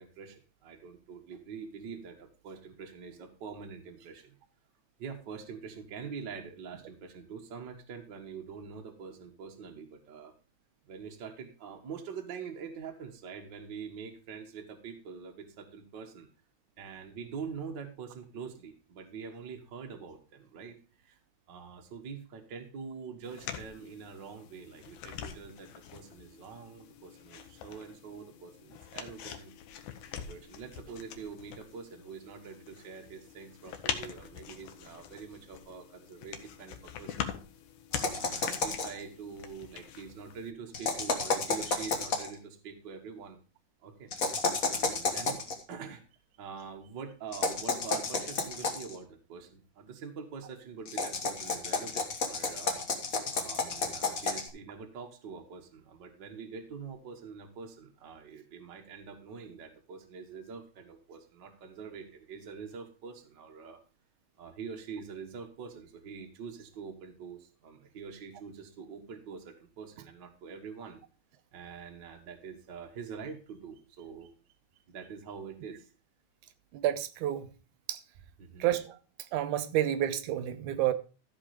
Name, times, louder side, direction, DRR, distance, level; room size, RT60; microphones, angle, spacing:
voice 1, 0.0-4.3 5.0-10.3 10.8-16.3 16.8-20.8 21.0-21.2 21.5-29.5 30.1-37.3 37.9-43.4 43.8-44.1 44.4-45.4 45.7-46.0 46.4-52.8 53.3-63.8 64.4-71.0 71.5-74.3 74.9-75.9 78.4-78.7, right 6 dB, 45° right, 1.5 m, -45 dB
sound 1, 23.2-40.5, left 9 dB, 70° left, 2.3 m, -44 dB
sound 2, 37.9-39.0 40.7-42.3 44.1-45.5 47.3-48.9 50.9-54.5, left 4 dB, 45° left, 1.1 m, -31 dB
voice 2, 76.7-77.5 77.9-78.0 78.6-79.0 79.3-80.9, right 12 dB, 80° right, 2.2 m, -29 dB
14.0 x 5.3 x 4.9 m
omnidirectional pair, 3.7 m